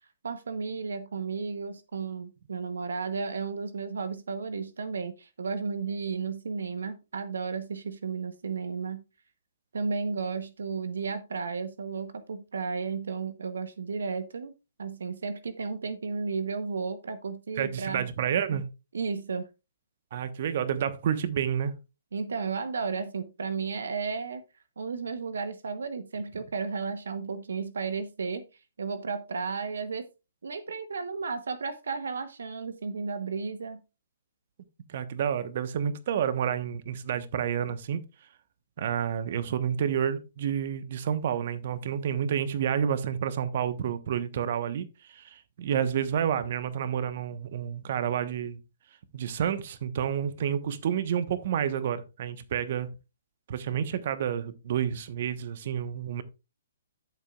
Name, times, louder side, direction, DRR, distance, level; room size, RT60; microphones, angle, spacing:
voice 1, 0.2-9.0 9.7-14.5 14.8-18.1 18.9-19.5 22.1-24.4 24.8-28.4 28.8-30.1 30.4-33.8, right 5 dB, 70° right, 1.0 m, -33 dB
voice 2, 17.6-18.6 20.1-21.7 34.9-38.0 38.8-48.6 49.1-52.9 53.5-56.2, right 8 dB, 50° right, 1.2 m, -29 dB
13.0 x 7.6 x 2.4 m
figure-of-eight pair, 130°, 0 cm